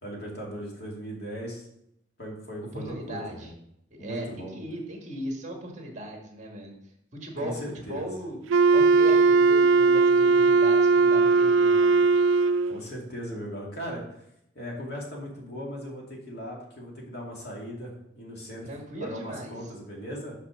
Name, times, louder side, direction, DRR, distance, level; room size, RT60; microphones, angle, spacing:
voice 1, 0.0-1.7 2.2-3.5 4.0-4.5 7.4-8.1 12.6-14.0 14.5-18.7 19.0-20.4, equal, 55° left, -2 dB, 2.4 m, -38 dB
voice 2, 2.7-3.5 4.0-4.3 4.5-6.8 7.2-7.6 7.9-8.4 8.7-12.1 18.6-19.6, right 1 dB, 35° right, 1 dB, 1.6 m, -37 dB
Wind instrument woodwind instrument, 8.5-12.8, right 4 dB, 80° right, 0.3 m, -19 dB
5.8 x 5.7 x 6.3 m, 0.77 s
head